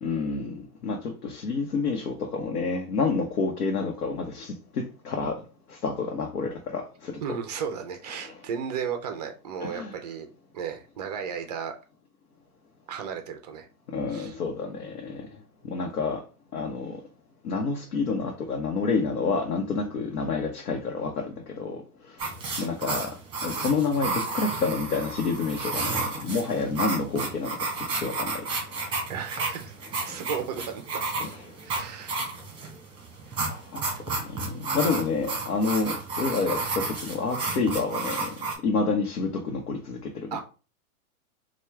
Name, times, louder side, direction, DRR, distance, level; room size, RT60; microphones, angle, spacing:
voice 1, 0.0-5.4 5.7-7.4 8.1-8.4 9.6-10.0 13.9-15.3 15.7-16.2 16.5-17.0 17.4-21.8 22.1-22.3 22.6-23.1 23.4-28.4 28.7-28.9 30.1-30.2 31.2-31.5 33.5-38.3 38.6-40.4, left 4 dB, 85° left, 1 dB, 0.9 m, -29 dB
voice 2, 7.2-10.3 10.5-11.7 12.9-13.7 14.1-14.3 29.1-31.0 31.6-32.1 33.3-33.5 40.3-40.4, right 7 dB, 30° right, 6 dB, 0.4 m, -34 dB
sound 1, 22.2-38.5, right 3 dB, 10° right, 1.1 m, -32 dB
4.3 x 2.3 x 3.4 m, 0.34 s
hypercardioid pair, 135°, 44 cm